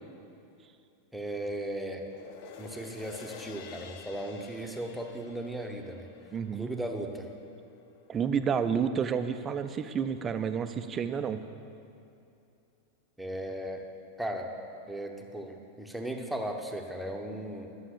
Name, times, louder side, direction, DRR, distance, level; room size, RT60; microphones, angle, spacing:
voice 1, 1.1-2.0 2.6-6.1 6.5-7.3 13.2-13.9 14.2-14.5 14.9-17.7, right 1 dB, ahead, 2 dB, 1.1 m, -36 dB
sound 1, 1.9-8.5 8.9-9.0, left 6 dB, 45° left, 0.7 m, -50 dB
voice 2, 6.3-6.7 8.1-11.4, right 7 dB, 25° right, 10 dB, 0.6 m, -30 dB
11.5 x 7.2 x 8.5 m, 2.7 s
figure-of-eight pair, 90°, 0 cm